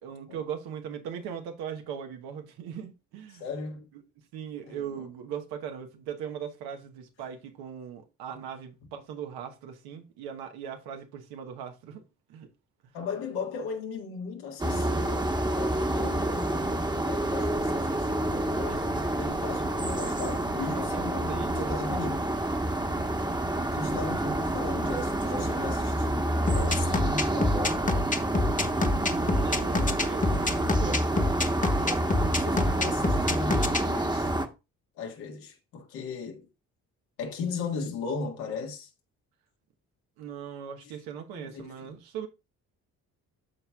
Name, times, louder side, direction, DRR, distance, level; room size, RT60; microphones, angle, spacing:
voice 1, 0.0-3.4 4.3-12.0 12.3-12.5 18.7-19.0 20.7-21.7 28.9-31.0 40.2-42.3, right 8 dB, 80° right, 1.1 m, -39 dB
voice 2, 3.3-3.9 4.7-5.1 8.3-8.4 12.9-22.3 23.7-27.9 30.8-31.4 31.8-34.3 34.9-36.5 37.2-38.9 40.8-40.9 41.3-41.8, left 4 dB, 85° left, 1.8 m, -37 dB
sound 1, 14.6-34.5, right 1 dB, 10° right, 1.1 m, -28 dB
sound 2, 26.5-33.8, left 2 dB, 20° left, 1.2 m, -26 dB
13.0 x 4.4 x 2.3 m
supercardioid pair, 60°, 37 cm